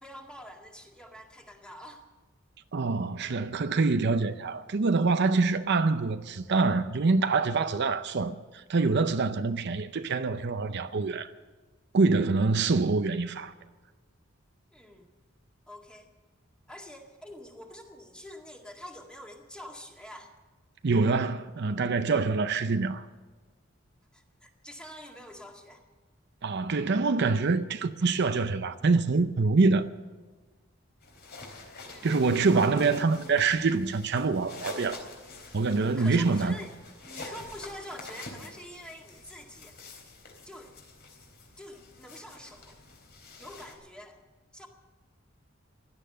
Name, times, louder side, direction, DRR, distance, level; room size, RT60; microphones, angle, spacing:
voice 1, 0.0-2.1 14.7-15.1 15.7-16.1 16.7-20.3 24.1-25.8 31.8-32.2 32.5-33.0 35.8-36.7 37.0-39.8 40.2-40.8 41.6-42.8 43.4-44.2 44.5-44.7, equal, 5° left, 2.0 m, -46 dB
voice 2, 2.7-11.3 11.9-13.5 20.8-23.1 26.4-29.9 32.0-35.0 35.5-36.5, right 4 dB, 60° right, 0.6 m, -25 dB
sound 1, 31.0-43.7, left 3 dB, 55° left, 3.7 m, -46 dB
16.5 x 12.5 x 6.7 m
head